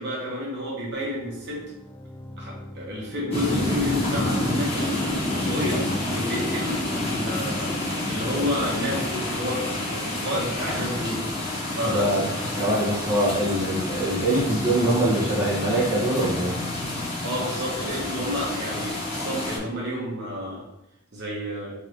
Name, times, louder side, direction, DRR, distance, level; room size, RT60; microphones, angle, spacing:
voice 1, 0.0-1.6 2.4-11.2 11.7-12.7 17.2-20.6 21.1-21.7, equal, 50° right, -4 dB, 1.3 m, -30 dB
sound 1, 0.9-18.5, equal, 10° left, 0.3 m, -41 dB
sound 2, 3.3-19.6, left 1 dB, 25° left, 1.0 m, -29 dB
sound 3, 4.6-10.9, left 2 dB, 60° left, 1.4 m, -39 dB
voice 2, 11.8-12.3 12.6-16.6, right 1 dB, 10° right, -10 dB, 1.6 m, -23 dB
3.8 x 3.8 x 3.1 m, 0.87 s
head